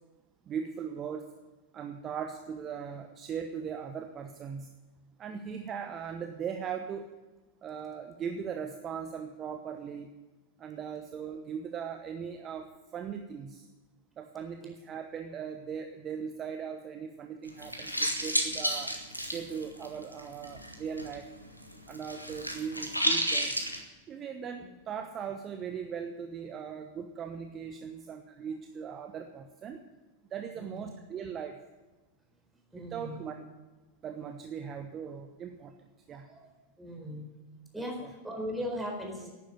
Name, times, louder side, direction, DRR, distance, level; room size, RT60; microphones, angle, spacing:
voice 1, 0.4-1.3 1.7-4.7 5.2-7.1 7.6-10.1 10.6-13.7 14.2-19.0 19.2-21.3 21.9-23.6 24.1-29.8 30.3-31.6 32.7-33.5 34.0-35.7 36.1-36.3 37.8-38.1, right 7 dB, 30° right, 6 dB, 1.0 m, -39 dB
sound 1, 17.5-21.2 21.4-23.8, equal, 90° left, 1.7 m, -31 dB
voice 2, 30.6-30.9 32.7-33.2 36.3-36.4 36.8-37.3 37.7-39.3, equal, 5° right, 0 dB, 4.3 m, -38 dB
11.5 x 9.9 x 9.3 m, 1.2 s
figure-of-eight pair, 90°, 0 cm